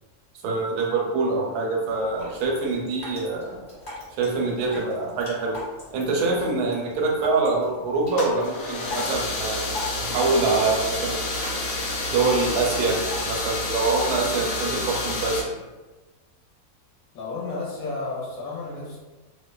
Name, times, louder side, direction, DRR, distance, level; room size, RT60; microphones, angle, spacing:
voice 1, 0.4-3.6 4.2-5.6 5.9-9.6 10.0-11.2 12.1-15.4, right 3 dB, 85° right, -1 dB, 1.1 m, -25 dB
Drip, 1.9-13.9, left 2 dB, 25° left, 0.8 m, -41 dB
sound 1, 8.1-15.4, left 2 dB, 90° left, 1.1 m, -29 dB
voice 2, 17.1-19.0, left 3 dB, 70° left, -5 dB, 1.0 m, -32 dB
2.7 x 2.1 x 2.2 m, 1.2 s
omnidirectional pair, 1.6 m